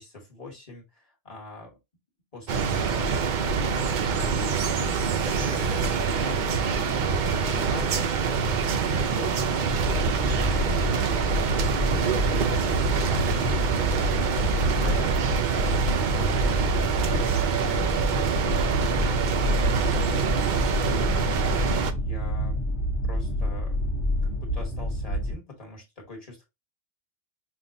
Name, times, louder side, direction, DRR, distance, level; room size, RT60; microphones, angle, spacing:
voice 1, 0.0-1.8 2.3-4.6 5.1-16.8 17.1-19.2 19.7-22.6 23.0-23.8 24.2-26.4, left 2 dB, 30° left, -1 dB, 1.4 m, -44 dB
sound 1, 2.5-21.9, right 5 dB, 55° right, 0.5 m, -25 dB
sound 2, 9.7-25.3, equal, 70° left, 1.2 m, -28 dB
5.4 x 2.3 x 2.6 m, 0.23 s
omnidirectional pair, 1.2 m